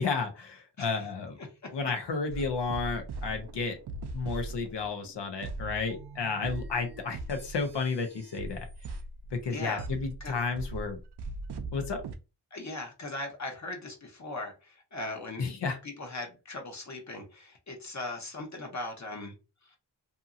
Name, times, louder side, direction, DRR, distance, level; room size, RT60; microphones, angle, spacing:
voice 1, 0.0-1.3 1.7-3.8 4.1-8.6 9.3-11.0 11.7-12.0 15.4-15.8, left 4 dB, 85° left, 6 dB, 0.7 m, -32 dB
sound 1, 2.3-12.1, right 2 dB, 70° right, 0.5 m, -40 dB
voice 2, 9.5-9.9 10.2-10.3 12.5-15.5 15.8-19.3, left 2 dB, 45° left, 2 dB, 0.8 m, -39 dB
2.7 x 2.7 x 2.4 m, 0.30 s
wide cardioid pair, 80°, 41 cm